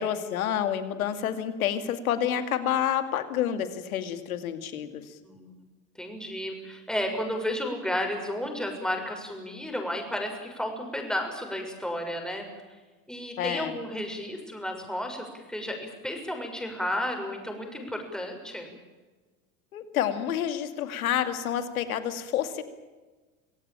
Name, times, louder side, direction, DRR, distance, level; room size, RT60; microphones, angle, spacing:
voice 1, 0.0-5.0 13.4-13.8 19.7-22.6, left 10 dB, 80° left, 9 dB, 2.4 m, -29 dB
voice 2, 5.2-5.5 6.0-12.5 13.1-18.7, left 1 dB, ahead, 3 dB, 6.5 m, -32 dB
25.5 x 17.0 x 8.9 m, 1.3 s
hypercardioid pair, 85°, 42 cm